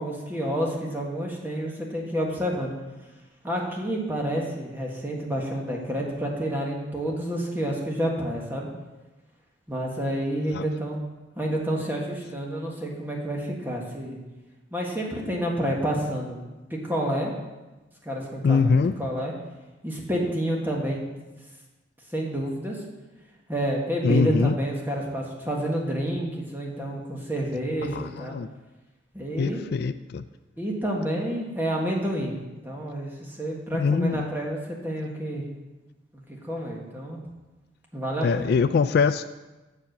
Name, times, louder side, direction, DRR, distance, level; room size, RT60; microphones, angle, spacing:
voice 1, 0.0-2.7 3.4-8.7 9.7-11.0 11.3-14.2 14.7-16.4 16.7-17.3 18.0-19.3 19.8-21.1 22.1-22.8 23.5-28.3 29.1-29.6 30.6-32.4 32.6-35.4 36.4-37.2 37.9-38.5, right 1 dB, 10° right, -2 dB, 1.5 m, -29 dB
voice 2, 18.4-18.9 24.0-24.5 27.8-28.5 29.4-30.2 33.8-34.3 38.2-39.3, left 5 dB, 55° left, 12 dB, 0.3 m, -23 dB
7.3 x 7.3 x 6.5 m, 1.1 s
head